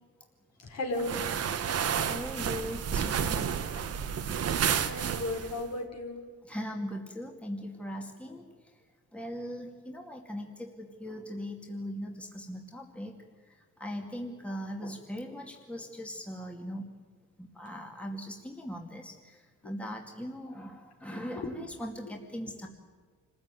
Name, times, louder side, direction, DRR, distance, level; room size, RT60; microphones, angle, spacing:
voice 1, 0.6-1.2 4.8-6.2 19.6-19.7 21.3-21.6 22.0-22.1, left 2 dB, 55° left, 2 dB, 4.7 m, -35 dB
sound 1, 1.0-5.6, right 8 dB, 55° right, 1.3 m, -31 dB
voice 2, 2.0-3.6 6.4-8.5 9.1-13.2 13.5-16.9 17.4-22.7, equal, 5° left, 2 dB, 2.3 m, -40 dB
25.5 x 15.0 x 9.2 m, 1.5 s
cardioid pair, 90°, 30 cm